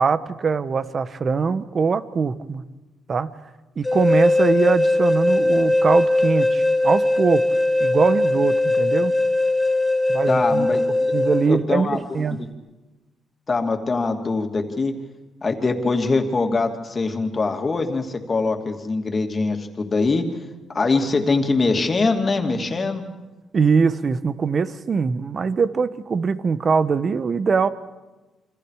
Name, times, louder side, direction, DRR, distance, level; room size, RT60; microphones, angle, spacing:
voice 1, 0.0-2.6 3.1-3.3 3.8-7.5 7.8-9.1 10.1-10.7 11.1-12.5 23.5-27.7, right 5 dB, 45° right, 12 dB, 1.3 m, -22 dB
sound 1, 3.8-11.5, left 2 dB, 10° left, 2.8 m, -20 dB
voice 2, 10.3-11.1 11.4-12.5 13.5-14.9 15.4-20.3 20.7-23.0, left 3 dB, 35° left, 4 dB, 2.7 m, -23 dB
28.0 x 25.5 x 5.0 m, 1.1 s
cardioid pair, 90°, 0 cm